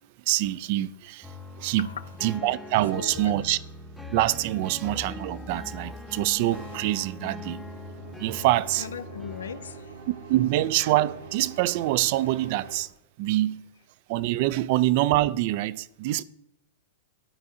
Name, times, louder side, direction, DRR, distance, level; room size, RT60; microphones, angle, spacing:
voice 1, 0.3-1.9 2.2-3.6 4.1-7.7 8.2-8.9 10.1-12.9 13.2-13.6 14.1-16.2, right 15 dB, 50° right, 0.3 m, -25 dB
sound 1, 1.2-9.8, left 2 dB, 5° left, 0.7 m, -41 dB
voice 2, 2.9-3.3 8.8-10.0, left 7 dB, 85° left, 0.4 m, -38 dB
sound 2, 6.5-12.8, right 4 dB, 80° right, 1.6 m, -44 dB
11.5 x 4.8 x 2.7 m
hypercardioid pair, 120°, 0 cm